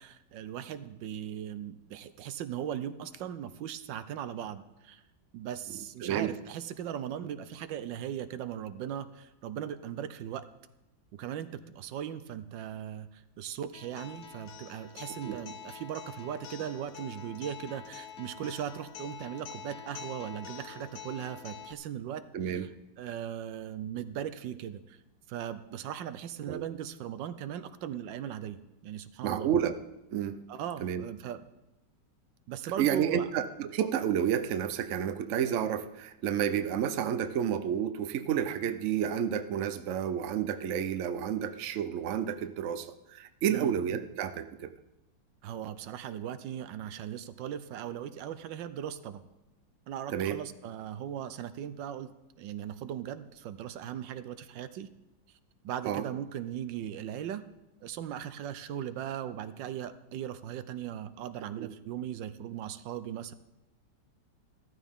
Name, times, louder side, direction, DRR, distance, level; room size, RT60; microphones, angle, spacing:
voice 1, 0.0-5.0 5.3-10.5 11.1-22.7 23.0-25.0 25.3-28.6 28.8-29.5 30.5-31.4 32.5-33.3 43.5-43.7 45.4-49.2 49.9-52.1 52.4-54.9 55.6-57.4 57.8-63.3, right 10 dB, 80° right, 12 dB, 1.4 m, -38 dB
voice 2, 6.0-6.3 15.2-15.4 22.3-22.7 26.5-26.6 29.2-29.8 30.1-30.4 30.8-31.0 32.8-44.7 50.1-50.4 55.9-56.0 61.6-61.7, right 9 dB, 60° right, 10 dB, 0.8 m, -30 dB
Acoustic guitar, 13.7-21.7, left 8 dB, 60° left, 0.7 m, -46 dB
14.5 x 13.5 x 3.6 m, 0.96 s
omnidirectional pair, 2.0 m